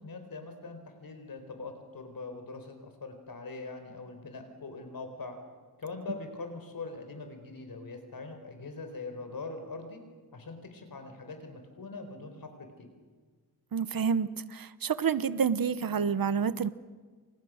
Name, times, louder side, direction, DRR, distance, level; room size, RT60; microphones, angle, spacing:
voice 1, 0.0-5.4 5.8-10.0 10.3-12.9, left 3 dB, 70° left, 6 dB, 4.7 m, -42 dB
voice 2, 13.7-16.7, right 6 dB, 65° right, 15 dB, 1.0 m, -28 dB
29.5 x 26.5 x 6.5 m, 1.5 s
wide cardioid pair, 145°, 37 cm